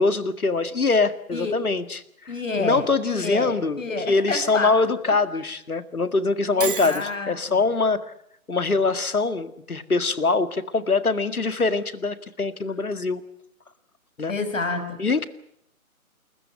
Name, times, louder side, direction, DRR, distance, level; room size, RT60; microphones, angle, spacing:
voice 1, 0.0-2.0 2.6-3.8 4.1-8.1 8.5-13.2 14.2-14.3 15.0-15.3, left 3 dB, 75° left, 12 dB, 2.0 m, -23 dB
voice 2, 2.3-4.7 5.1-5.2 6.6-7.6 14.3-15.0, left 3 dB, 60° left, 8 dB, 6.0 m, -29 dB
Shatter, 6.6-7.1, right 7 dB, 35° right, 1.8 m, -30 dB
28.5 x 14.5 x 9.7 m, 0.72 s
figure-of-eight pair, 150°, 44 cm